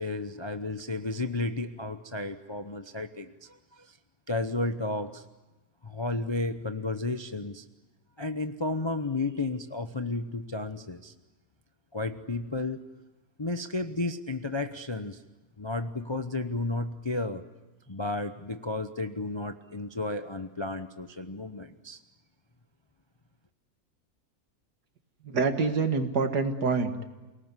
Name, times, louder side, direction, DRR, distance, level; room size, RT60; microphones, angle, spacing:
voice 1, 0.0-4.0 4.3-5.2 5.8-7.7 8.2-11.1 11.9-12.9 13.4-15.2 15.6-17.4 17.9-22.0, left 2 dB, 25° left, 8 dB, 0.6 m, -33 dB
voice 2, 25.2-27.1, right 4 dB, 85° right, 6 dB, 2.4 m, -26 dB
29.0 x 18.5 x 9.7 m, 1.1 s
omnidirectional pair, 1.7 m